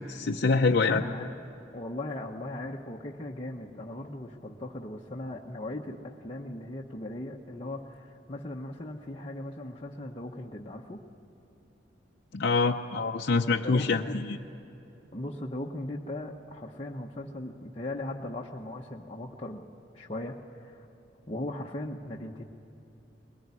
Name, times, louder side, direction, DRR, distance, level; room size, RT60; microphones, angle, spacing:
voice 1, 0.0-1.1 12.3-14.4, left 4 dB, 60° left, 2 dB, 0.6 m, -25 dB
voice 2, 0.7-1.3 1.7-11.0 13.6-14.2 15.1-19.6 19.9-20.9 21.3-22.4, left 1 dB, 30° left, -1 dB, 1.0 m, -38 dB
21.5 x 18.5 x 9.7 m, 3.0 s
head